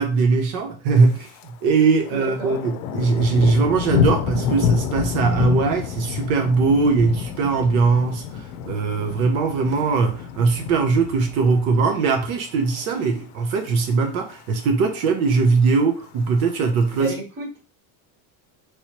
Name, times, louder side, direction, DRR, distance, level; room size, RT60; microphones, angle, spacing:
voice 1, 0.0-17.1, right 4 dB, 75° right, 0.8 m, -20 dB
Thunder, 1.0-1.5 1.8-12.1 12.5-12.9 13.3-13.8 14.0-14.1 14.3-14.4 14.8-15.4 16.1-17.1, left 8 dB, 90° left, 0.5 m, -28 dB
voice 2, 2.1-2.6 16.9-17.6, right 3 dB, 25° right, 1.1 m, -31 dB
3.2 x 3.1 x 2.8 m
cardioid pair, 170°, 43 cm